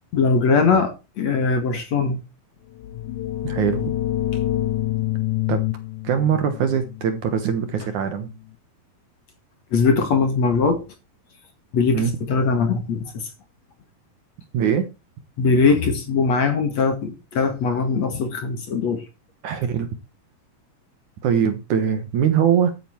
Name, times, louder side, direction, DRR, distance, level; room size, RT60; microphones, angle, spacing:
voice 1, 0.1-2.2 9.7-10.8 11.7-13.3 15.4-19.0, left 4 dB, 50° left, 2.8 m, -21 dB
sound 1, 2.8-8.3, left 14 dB, 85° left, 1.7 m, -27 dB
voice 2, 3.4-4.0 5.5-5.6 6.0-8.3 11.9-12.1 14.5-14.9 19.4-19.9 21.2-22.7, right 8 dB, 65° right, 2.3 m, -22 dB
13.0 x 9.0 x 4.5 m
omnidirectional pair, 4.4 m